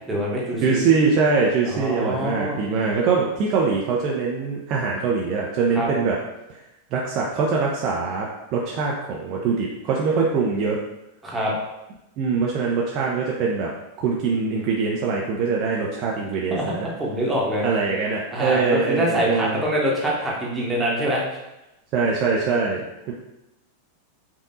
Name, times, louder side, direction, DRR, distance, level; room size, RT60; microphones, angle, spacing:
voice 1, 0.1-0.8 1.7-2.6 5.7-5.9 11.2-11.5 16.5-17.6 18.3-21.2, equal, 10° right, -4 dB, 1.2 m, -25 dB
voice 2, 0.6-6.2 6.5-6.6 6.9-10.8 12.2-13.7 14.0-16.9 17.6-19.6 21.9-23.1, right 4 dB, 40° right, -3 dB, 0.5 m, -23 dB
5.1 x 2.6 x 2.6 m, 0.93 s
figure-of-eight pair, 90°, 0 cm